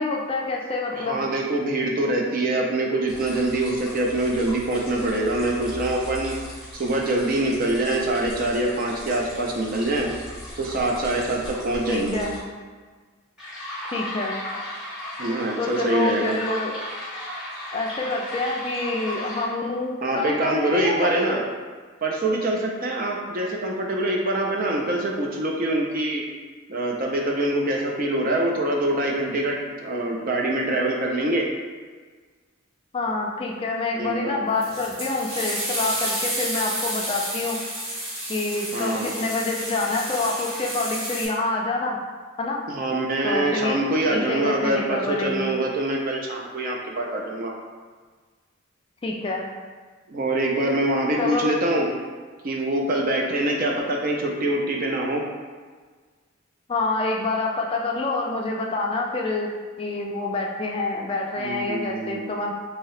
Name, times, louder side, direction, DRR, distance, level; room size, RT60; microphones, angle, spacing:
voice 1, 0.0-1.3 11.9-12.4 13.9-14.4 15.6-16.8 17.7-21.5 32.9-37.6 38.3-42.0 42.4-42.6 43.2-43.8 44.1-45.5 49.0-49.5 51.2-51.6 56.7-59.5 59.8-62.5, left 3 dB, 25° left, 0 dB, 0.3 m, -27 dB
voice 2, 0.9-6.4 6.7-10.1 10.6-12.3 15.2-16.4 20.0-21.4 22.0-26.2 26.7-31.4 34.0-34.4 38.7-39.1 42.7-47.5 50.1-51.9 52.4-55.2 61.4-62.3, right 1 dB, 45° right, 0 dB, 0.4 m, -24 dB
sound 1, 3.1-12.4 13.4-19.4, left 1 dB, 5° right, 1.0 m, -37 dB
sound 2, 34.6-41.3, right 1 dB, 65° right, 1.4 m, -30 dB
2.8 x 2.7 x 3.1 m, 1.5 s
head